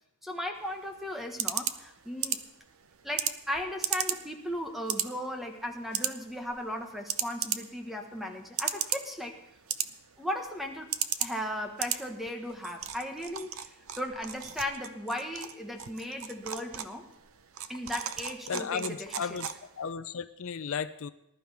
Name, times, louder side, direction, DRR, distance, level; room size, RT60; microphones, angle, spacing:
voice 1, 0.2-2.4 3.0-9.3 10.2-10.9 11.2-17.1 17.7-19.3, equal, ahead, 3 dB, 1.3 m, -36 dB
sound 1, 0.6-19.9, right 10 dB, 70° right, 0.7 m, -37 dB
voice 2, 18.5-21.1, left 6 dB, 65° left, 12 dB, 0.5 m, -35 dB
19.5 x 12.0 x 3.5 m, 0.83 s
head